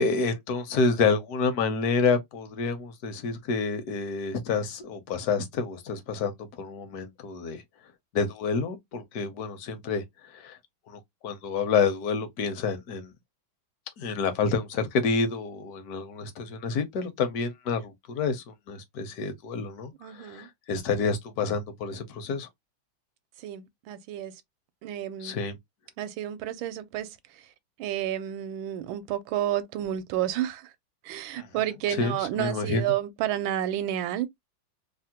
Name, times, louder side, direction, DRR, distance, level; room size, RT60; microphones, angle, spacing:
voice 1, 0.0-7.6 8.1-10.6 10.9-13.1 14.0-22.5 25.2-25.5 31.4-31.5 31.9-32.8, left 4 dB, 65° left, 1.0 m, -28 dB
voice 2, 20.0-20.5 23.4-24.3 24.8-25.4 26.0-27.2 27.8-30.7 31.0-34.3, right 12 dB, 80° right, 1.3 m, -30 dB
3.4 x 2.1 x 2.7 m
omnidirectional pair, 2.2 m